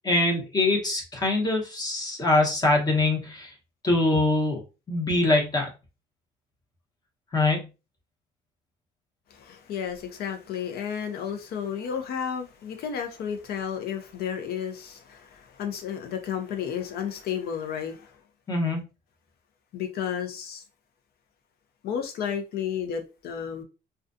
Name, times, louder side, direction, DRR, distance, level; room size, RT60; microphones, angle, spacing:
voice 1, 0.0-3.5 3.8-4.6 4.9-5.7 7.3-7.6 18.5-18.8, left 2 dB, 25° left, 1.0 m, -23 dB
voice 2, 9.3-18.1 19.7-20.6 21.8-23.6, left 8 dB, 65° left, 0.6 m, -32 dB
2.3 x 2.3 x 2.6 m
cardioid pair, 110°, 17 cm